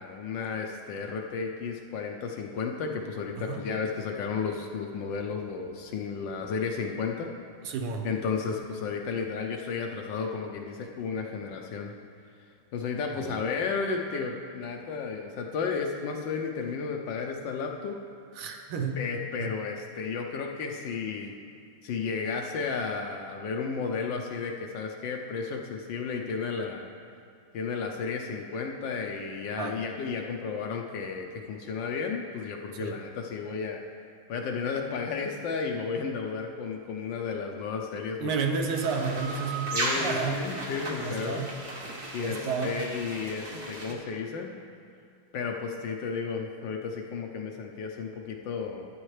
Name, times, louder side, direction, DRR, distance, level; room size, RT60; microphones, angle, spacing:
voice 1, 0.0-7.3 8.0-11.9 12.7-18.0 19.0-21.3 21.8-26.9 27.5-33.8 34.3-38.3 39.7-41.4 42.1-44.5 45.3-48.9, left 5 dB, 70° left, 2 dB, 1.2 m, -33 dB
voice 2, 3.4-3.7 7.6-8.1 13.1-13.5 18.3-19.1 19.4-19.5 29.6-29.8 32.8-32.9 38.0-40.5 41.0-41.6 42.2-42.8, right 4 dB, 80° right, 4 dB, 1.8 m, -32 dB
sound 1, 38.7-43.9, right 2 dB, 40° right, 0.9 m, -35 dB
12.0 x 9.4 x 3.2 m, 2.4 s
omnidirectional pair, 2.4 m